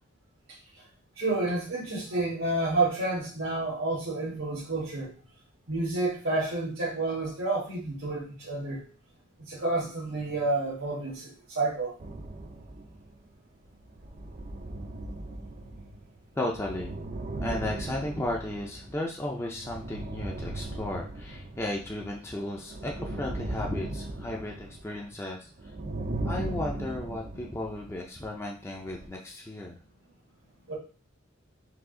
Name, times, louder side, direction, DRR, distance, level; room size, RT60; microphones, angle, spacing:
voice 1, 1.2-5.1 5.7-8.9 9.5-11.9 30.7-30.8, right 2 dB, 85° right, -7 dB, 1.5 m, -29 dB
sound 1, 12.0-13.3 13.8-22.2 22.5-25.3 25.6-28.0 28.8-29.1, right 1 dB, 40° right, 0.5 m, -38 dB
voice 2, 16.4-17.0 17.4-25.5 26.2-29.7, left 1 dB, 15° left, -1 dB, 0.5 m, -34 dB
4.8 x 2.5 x 3.7 m, 0.36 s
head